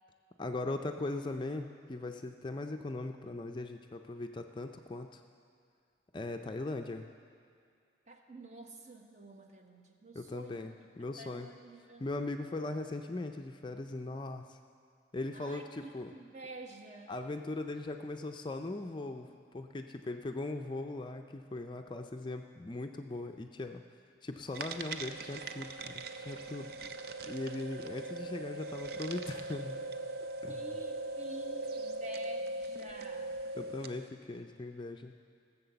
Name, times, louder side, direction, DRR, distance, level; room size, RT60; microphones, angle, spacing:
voice 1, 0.4-5.2 6.1-7.1 10.1-11.5 12.0-14.6 15.1-16.1 17.1-23.8 24.2-26.8 27.2-29.8 30.4-30.7 33.5-35.1, left 2 dB, 25° left, 5 dB, 0.4 m, -39 dB
voice 2, 8.1-10.7 11.2-12.1 15.3-17.2 30.5-33.4, right 2 dB, 40° right, 3 dB, 1.0 m, -49 dB
sound 1, 24.5-34.1, right 2 dB, 55° right, 0.5 m, -40 dB
15.5 x 7.2 x 6.8 m, 2.3 s
head